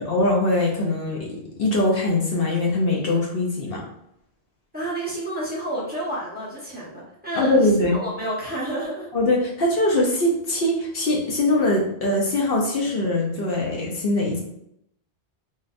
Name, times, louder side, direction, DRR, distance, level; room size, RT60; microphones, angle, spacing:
voice 1, 0.0-3.8 7.3-8.0 9.1-14.4, left 2 dB, 65° left, -2 dB, 0.8 m, -22 dB
voice 2, 4.7-9.1, right 1 dB, 10° right, -6 dB, 0.8 m, -29 dB
4.0 x 2.1 x 2.5 m, 0.76 s
omnidirectional pair, 1.1 m